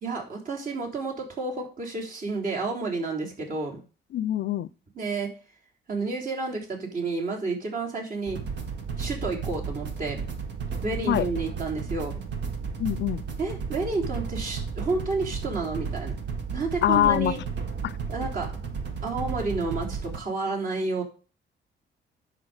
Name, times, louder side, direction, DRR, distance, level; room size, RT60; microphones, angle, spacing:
voice 1, 0.0-3.8 5.0-5.3 5.9-8.4 9.0-10.2 10.8-12.1 13.4-16.1 16.5-17.4 18.1-18.5 19.0-21.0, right 3 dB, 45° right, 3.6 m, -30 dB
voice 2, 4.1-4.7 11.1-11.3 12.8-13.2 16.8-17.3 17.8-17.9, left 12 dB, 65° left, 0.6 m, -24 dB
sound 1, 8.3-20.2, right 5 dB, 60° right, 1.9 m, -33 dB
9.6 x 6.8 x 5.1 m
cardioid pair, 90°, 20 cm